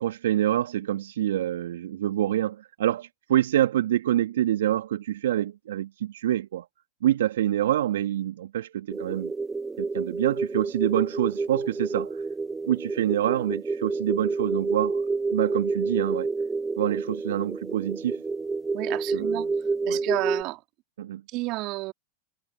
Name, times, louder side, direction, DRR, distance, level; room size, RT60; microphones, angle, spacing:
voice 1, 0.0-6.7 7.0-9.3 9.8-12.2 12.7-15.1 15.3-16.3 16.8-18.2 19.1-19.5 19.9-20.0 21.0-21.2, right 12 dB, 70° right, 2.0 m, -26 dB
sound 1, 8.9-20.4, right 4 dB, 15° right, 1.4 m, -29 dB
voice 2, 18.7-19.5 19.9-20.6 21.3-21.9, right 21 dB, 45° right, 3.3 m, -30 dB
hypercardioid pair, 95°, 0 cm